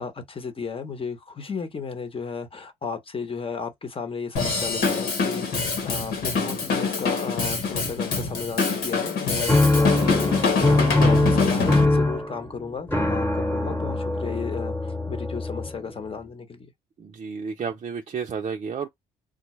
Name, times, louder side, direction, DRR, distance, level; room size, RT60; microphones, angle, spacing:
voice 1, 0.0-16.7, left 5 dB, 35° left, 1.0 m, -34 dB
Drum kit / Drum, 4.4-11.9, left 4 dB, 70° left, 1.4 m, -25 dB
sound 1, 9.5-16.0, left 2 dB, 10° left, 1.1 m, -22 dB
voice 2, 17.0-18.9, right 6 dB, 40° right, 0.5 m, -31 dB
3.6 x 2.2 x 3.1 m
supercardioid pair, 65°, 17 cm